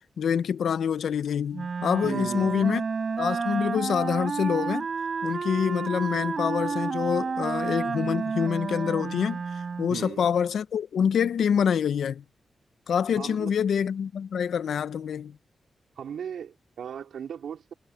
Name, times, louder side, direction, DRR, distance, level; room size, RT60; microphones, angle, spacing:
voice 1, 0.2-2.8 3.2-4.9 5.2-9.4 9.8-12.2 12.9-15.4, left 7 dB, 80° left, 0.8 m, -26 dB
Wind instrument woodwind instrument, 1.5-10.1, right 5 dB, 55° right, 4.7 m, -30 dB
voice 2, 2.0-2.7 9.9-10.3 13.2-13.5 16.0-17.7, right 8 dB, 85° right, 4.3 m, -37 dB
cardioid pair, 55°, 0 cm